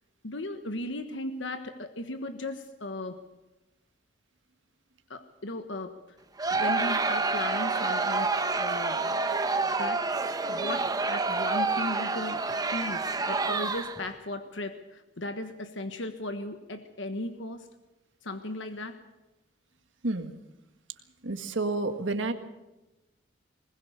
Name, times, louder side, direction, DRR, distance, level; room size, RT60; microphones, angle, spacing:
voice 1, 0.2-3.2 5.1-6.0 6.5-9.3 9.8-10.0 10.5-12.4 12.7-17.7 18.2-19.0, left 2 dB, 80° left, 8 dB, 1.4 m, -36 dB
Crowd, 6.4-14.1, right 3 dB, 20° right, 1.0 m, -28 dB
voice 2, 21.2-22.3, right 2 dB, 80° right, 7 dB, 1.7 m, -29 dB
20.5 x 20.5 x 6.7 m, 1.0 s
head